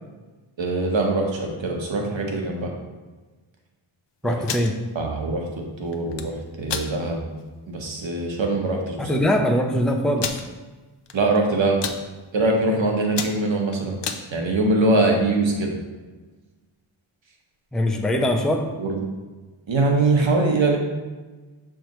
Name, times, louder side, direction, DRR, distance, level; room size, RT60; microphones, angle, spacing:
voice 1, 0.6-2.7 4.2-4.4 4.9-7.2 7.7-9.0 11.1-11.8 12.3-14.0 14.3-15.8 18.8-19.0 19.7-20.8, right 2 dB, 65° right, 1 dB, 1.3 m, -22 dB
voice 2, 4.2-4.8 9.0-10.3 17.7-18.7, left 1 dB, ahead, 3 dB, 0.6 m, -22 dB
sound 1, 4.3-4.7 5.9-6.3 6.7-6.9 7.4-7.5 7.8-8.1 8.9-9.0 9.1-9.2 10.2-10.4 11.1-11.4 11.6-12.0 12.6-12.7 13.0-14.2, left 6 dB, 60° left, 0.7 m, -30 dB
6.3 x 5.0 x 3.1 m, 1.3 s
cardioid pair, 60°, 48 cm